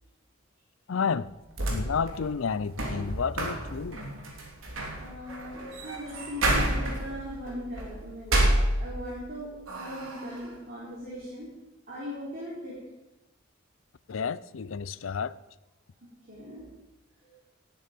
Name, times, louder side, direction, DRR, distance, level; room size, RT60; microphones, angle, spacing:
voice 1, 0.9-1.3 1.7-4.0 14.1-15.3, left 5 dB, 75° left, 0.5 m, -30 dB
sound 1, 1.3-9.3 9.7-10.5, right 1 dB, 80° right, 3.1 m, -30 dB
voice 2, 5.0-8.4 8.8-11.5 11.9-12.7 16.3-16.6 17.2-17.3, left 1 dB, 45° right, 4.5 m, -39 dB
18.5 x 9.3 x 5.3 m
head